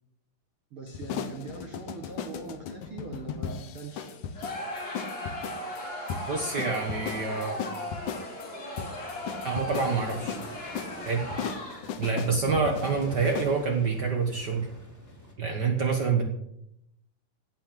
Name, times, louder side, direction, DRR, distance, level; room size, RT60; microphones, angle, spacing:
voice 1, 0.7-4.2 12.1-12.4, right 3 dB, 55° right, 3 dB, 1.6 m, -42 dB
sound 1, 0.9-13.6, left 7 dB, 65° left, 2.2 m, -38 dB
Crowd, 4.3-12.1, left 1 dB, 30° left, 3.9 m, -37 dB
voice 2, 6.3-7.6 9.4-10.4 11.1-11.2 12.0-14.7 15.4-16.2, right 5 dB, 75° right, 2 dB, 0.9 m, -27 dB
Waves surf, 9.1-15.3, equal, 5° left, 3.0 m, -47 dB
16.5 x 6.1 x 8.9 m, 0.81 s
omnidirectional pair, 4.2 m